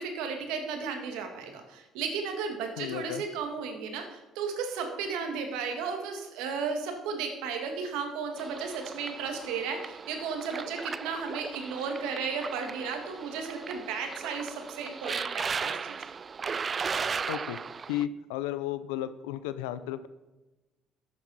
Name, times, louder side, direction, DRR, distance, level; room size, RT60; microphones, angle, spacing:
voice 1, 0.0-15.3 15.5-16.0, right 5 dB, 75° right, 4 dB, 1.9 m, -34 dB
voice 2, 2.8-3.2 17.3-17.6 17.9-20.1, left 12 dB, 85° left, 14 dB, 0.6 m, -33 dB
sound 1, 8.4-18.0, right 5 dB, 40° right, 0.4 m, -36 dB
12.0 x 8.5 x 4.3 m, 1.1 s
hypercardioid pair, 60°, 0 cm